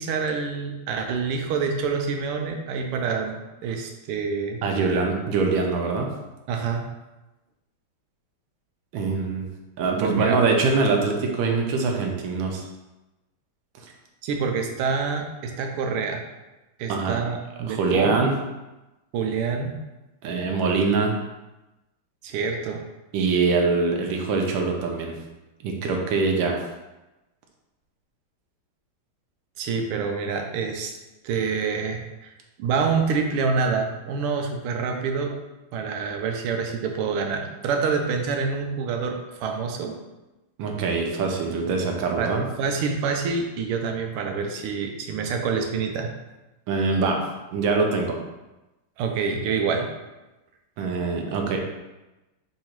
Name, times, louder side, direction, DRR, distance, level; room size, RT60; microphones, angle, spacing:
voice 1, 0.0-4.6 6.5-6.9 10.0-10.4 14.2-16.2 16.8-18.2 19.1-19.8 22.2-22.8 29.6-31.0 31.2-32.3 32.6-35.4 35.7-40.0 42.2-42.3 42.6-46.1 49.0-49.9, right 5 dB, 90° right, 4 dB, 1.5 m, -27 dB
voice 2, 4.6-6.1 8.9-9.5 9.8-12.6 16.9-17.2 17.6-18.4 20.2-21.1 23.1-25.2 25.6-26.6 40.6-42.5 46.7-47.2 47.5-48.2 50.8-51.6, right 4 dB, 70° right, 2 dB, 1.3 m, -23 dB
3.9 x 2.7 x 4.4 m, 1.0 s
omnidirectional pair, 2.4 m